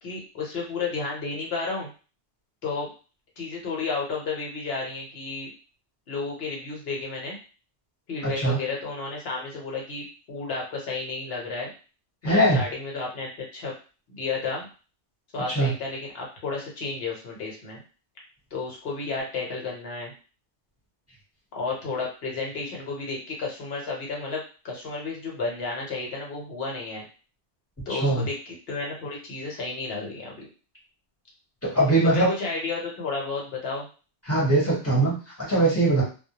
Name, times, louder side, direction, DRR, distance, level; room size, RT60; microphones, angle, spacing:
voice 1, 0.0-1.9 2.6-2.9 3.4-5.5 6.1-7.4 8.1-11.7 12.2-13.7 14.1-14.7 15.3-17.8 18.5-20.1 21.5-27.0 27.9-30.5 32.0-33.9, left 4 dB, 60° left, -2 dB, 1.0 m, -32 dB
voice 2, 8.2-8.6 12.2-12.6 15.5-15.7 27.9-28.3 31.6-32.3 34.3-36.0, right 2 dB, 15° left, -6 dB, 0.8 m, -21 dB
2.1 x 2.0 x 2.8 m, 0.35 s
omnidirectional pair, 1.2 m